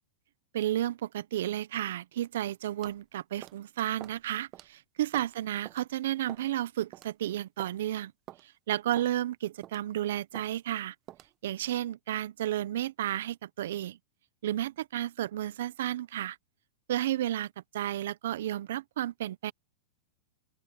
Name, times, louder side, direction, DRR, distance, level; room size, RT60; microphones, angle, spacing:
voice 1, 0.5-8.1 8.4-10.9 11.4-14.0 14.4-16.4 16.9-19.5, right 12 dB, 70° right, 0.7 m, -32 dB
sound 1, 2.8-3.0 3.4-3.6 4.0-4.2 4.5-4.7 5.1-5.4 5.6-5.8 6.3-6.5 6.9-7.1 7.6-7.8 8.3-8.4 9.0-9.1 9.6-9.9 10.3-10.5 11.1-11.3, right 14 dB, 35° right, 1.0 m, -46 dB
open air
hypercardioid pair, 120°, 0 cm